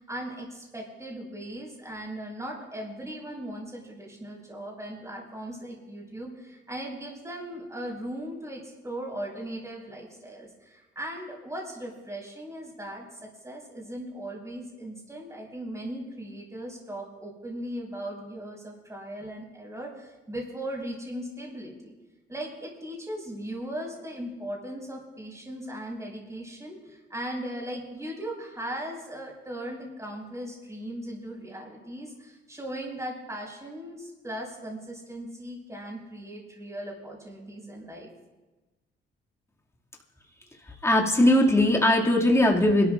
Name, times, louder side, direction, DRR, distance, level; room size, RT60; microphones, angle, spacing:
voice 1, 0.0-21.9 22.3-38.1, right 1 dB, 15° right, -1 dB, 6.0 m, -38 dB
voice 2, 40.8-42.9, left 1 dB, 15° left, -2 dB, 2.4 m, -20 dB
26.5 x 13.0 x 2.6 m, 1.1 s
cardioid pair, 90°, 20 cm